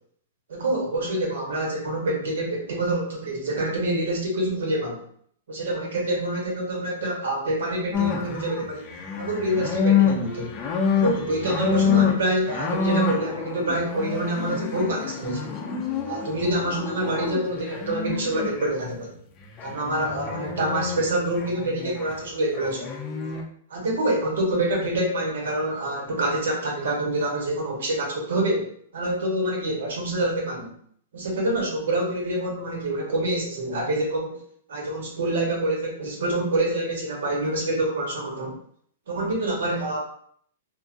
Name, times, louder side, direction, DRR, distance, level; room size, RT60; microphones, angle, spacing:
voice 1, 0.5-5.0 5.5-8.9 9.2-10.5 10.9-15.4 16.0-19.1 19.6-22.9 23.7-30.7 31.1-34.4 34.7-38.5 39.1-40.0, right 1 dB, 85° right, -1 dB, 1.1 m, -26 dB
sound 1, 7.9-18.7 19.6-21.0 21.3-22.2 22.5-23.4, left 6 dB, 25° left, 0.5 m, -27 dB
2.9 x 2.4 x 2.5 m, 0.62 s
hypercardioid pair, 150°, 0 cm